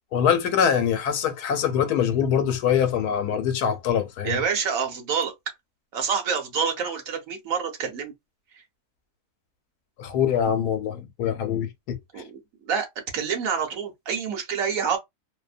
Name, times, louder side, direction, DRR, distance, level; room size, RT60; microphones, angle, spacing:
voice 1, 0.1-4.4 10.0-12.0, left 8 dB, 85° left, 1.2 m, -24 dB
voice 2, 4.2-5.3 5.9-8.1 8.5-8.6 12.1-12.9 13.1-15.0, right 6 dB, 65° right, 1.1 m, -27 dB
2.7 x 2.1 x 2.4 m
omnidirectional pair, 1.6 m